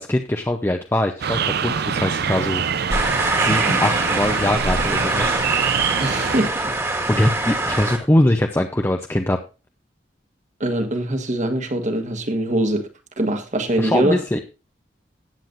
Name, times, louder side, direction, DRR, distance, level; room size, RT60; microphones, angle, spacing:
voice 1, 0.0-2.9 3.4-5.4 7.1-9.4 13.8-14.4, left 1 dB, 15° left, 4 dB, 0.6 m, -22 dB
sound 1, 1.2-6.5, right 7 dB, 60° right, 0.6 m, -24 dB
sound 2, 2.9-8.0, right 2 dB, 15° right, 1.7 m, -23 dB
voice 2, 6.0-6.7 10.6-12.9 13.2-14.2, right 1 dB, 40° right, 6 dB, 1.5 m, -23 dB
17.5 x 7.7 x 2.5 m, 0.31 s
head